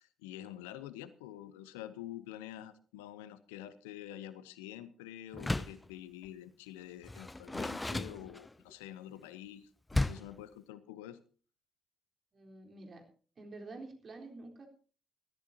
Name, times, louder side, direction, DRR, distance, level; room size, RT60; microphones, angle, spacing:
voice 1, 0.0-11.2, left 12 dB, 75° left, 15 dB, 0.8 m, -47 dB
Door, 5.3-5.9 7.0-8.7 9.9-10.4, left 2 dB, 15° left, 0.6 m, -34 dB
voice 2, 12.3-13.1 13.4-14.7, right 3 dB, 40° right, 3 dB, 4.0 m, -48 dB
21.0 x 14.0 x 2.9 m, 0.39 s
figure-of-eight pair, 40°, 0 cm